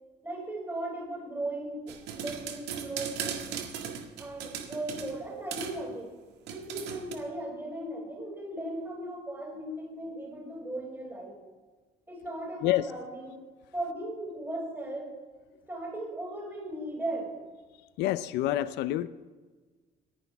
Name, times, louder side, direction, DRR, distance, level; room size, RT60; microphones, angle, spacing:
voice 1, 0.2-3.4 4.2-6.1 6.5-11.3 12.1-13.3 13.7-15.1 15.7-17.3, right 1 dB, 15° right, 6.0 m, -37 dB
sound 1, 1.9-5.2 5.5-5.8 6.5-7.1, right 8 dB, 85° right, 1.8 m, -37 dB
voice 2, 18.0-19.1, left 14 dB, 90° left, 0.6 m, -27 dB
27.5 x 10.5 x 3.6 m
cardioid pair, 110°, 17 cm